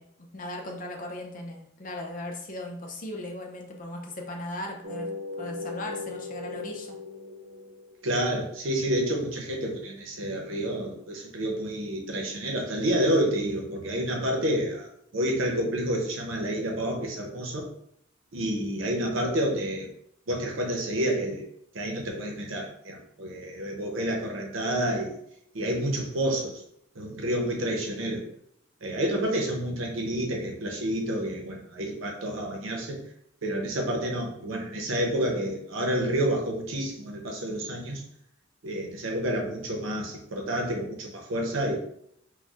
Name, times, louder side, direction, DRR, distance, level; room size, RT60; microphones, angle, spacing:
voice 1, 0.0-5.1 5.4-7.0, left 1 dB, 40° left, 2 dB, 0.6 m, -37 dB
sound 1, 4.8-8.4, left 3 dB, 45° right, 0.4 m, -38 dB
voice 2, 8.0-14.9 15.1-17.7 18.3-19.9 20.3-21.4 21.7-25.1 25.5-26.6 27.0-28.2 28.8-33.0 33.4-38.0 38.6-41.8, right 1 dB, 85° right, 1 dB, 0.8 m, -29 dB
4.2 x 2.2 x 2.5 m, 0.71 s
head